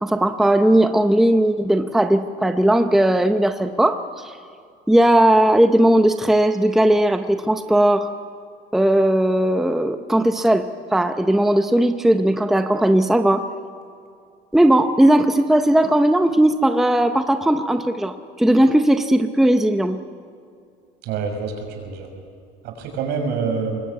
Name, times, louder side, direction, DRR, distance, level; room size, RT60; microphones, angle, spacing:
voice 1, 0.0-4.3 4.9-8.1 8.7-13.4 14.5-20.0, right 1 dB, ahead, 7 dB, 0.7 m, -17 dB
voice 2, 21.1-22.1 22.6-23.8, right 5 dB, 65° right, 3 dB, 6.2 m, -26 dB
25.0 x 21.0 x 9.4 m, 2.4 s
cardioid pair, 170°, 18 cm